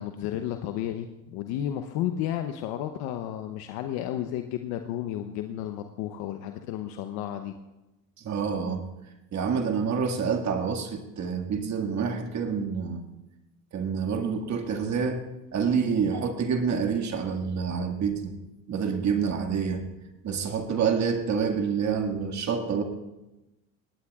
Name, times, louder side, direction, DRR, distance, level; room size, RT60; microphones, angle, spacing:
voice 1, 0.0-7.5, left 11 dB, 70° left, 6 dB, 0.9 m, -32 dB
voice 2, 8.2-8.9 9.3-13.1 13.7-15.2 15.5-18.4 18.7-19.9 20.2-22.8, right 6 dB, 45° right, 4 dB, 2.0 m, -27 dB
18.5 x 18.0 x 2.4 m, 1.0 s
supercardioid pair, 80°, 39 cm